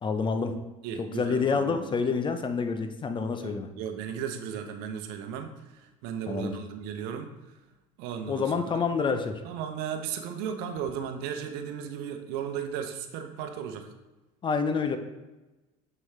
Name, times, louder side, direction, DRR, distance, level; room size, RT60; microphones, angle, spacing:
voice 1, 0.0-0.6 1.0-3.7 6.3-6.5 8.3-9.4 14.4-15.0, left 5 dB, 30° left, 8 dB, 0.7 m, -28 dB
voice 2, 0.8-1.8 3.4-7.3 8.0-8.9 9.4-13.9, right 8 dB, 70° right, 6 dB, 0.9 m, -35 dB
7.0 x 6.2 x 3.3 m, 1.1 s
supercardioid pair, 90°, 17 cm